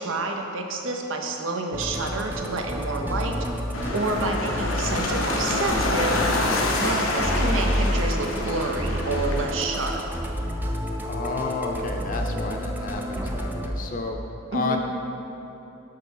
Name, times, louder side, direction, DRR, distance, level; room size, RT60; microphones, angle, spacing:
voice 1, 0.0-3.4 3.9-6.2 6.8-10.0 14.5-14.8, right 2 dB, 80° right, 3 dB, 0.7 m, -28 dB
Musical instrument, 1.7-13.7, equal, 10° right, 0.5 m, -29 dB
sound 1, 3.7-9.4, left 2 dB, 85° left, 0.8 m, -27 dB
voice 2, 11.0-14.2 14.5-14.8, left 3 dB, 45° left, 3 dB, 0.6 m, -31 dB
6.7 x 4.6 x 5.4 m, 3.0 s
head